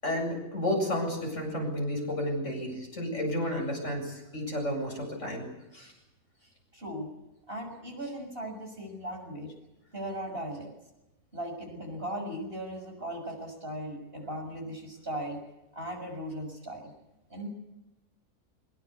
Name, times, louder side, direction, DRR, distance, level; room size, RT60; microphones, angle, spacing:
voice 1, 0.0-5.5 5.7-5.9, left 1 dB, 55° left, 2 dB, 8.4 m, -31 dB
voice 2, 6.7-7.1 7.5-9.5 9.9-10.7 11.3-15.4 15.7-16.9 17.3-17.5, right 1 dB, 40° right, 3 dB, 6.9 m, -38 dB
25.0 x 22.0 x 8.5 m, 0.96 s
omnidirectional pair, 1.5 m